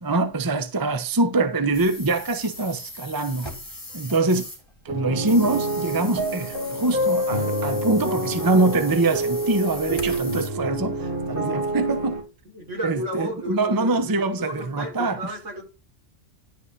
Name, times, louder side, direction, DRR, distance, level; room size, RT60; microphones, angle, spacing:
voice 1, 0.0-3.5 3.9-4.5 4.8-12.2 12.8-15.3, right 2 dB, 20° right, 0.8 m, -24 dB
sound 1, 1.7-4.7 5.2-10.5, left 1 dB, 20° left, 3.2 m, -39 dB
sound 2, 4.9-12.2, right 1 dB, 45° right, 3.8 m, -27 dB
voice 2, 12.5-15.6, equal, 75° right, 4.9 m, -34 dB
11.5 x 5.3 x 4.2 m
omnidirectional pair, 1.3 m